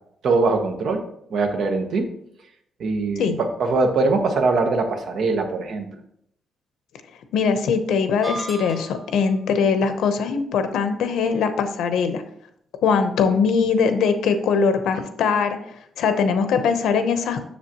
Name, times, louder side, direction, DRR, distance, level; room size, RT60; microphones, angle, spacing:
voice 1, 0.2-1.0 1.3-2.1 2.8-5.9, right 3 dB, 55° right, 4 dB, 1.0 m, -22 dB
voice 2, 7.3-12.2 12.8-15.6 16.0-17.4, left 5 dB, 85° left, 8 dB, 0.8 m, -21 dB
sound 1, 8.2-9.2, right 2 dB, 15° right, 0.7 m, -34 dB
7.4 x 6.7 x 3.0 m, 0.72 s
cardioid pair, 180°, 0 cm